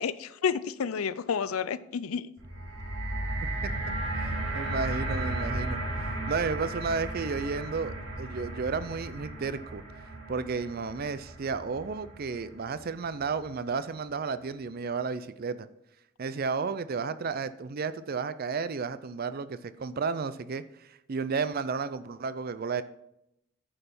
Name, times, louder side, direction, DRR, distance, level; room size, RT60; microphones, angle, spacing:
voice 1, 0.0-2.3, left 6 dB, 85° left, 0.5 m, -30 dB
sound 1, 2.4-12.6 13.4-13.5, right 1 dB, 65° right, 2.3 m, -35 dB
voice 2, 4.1-9.8 10.3-15.7 16.2-22.8, right 5 dB, 45° right, 0.5 m, -33 dB
9.8 x 5.5 x 6.0 m
head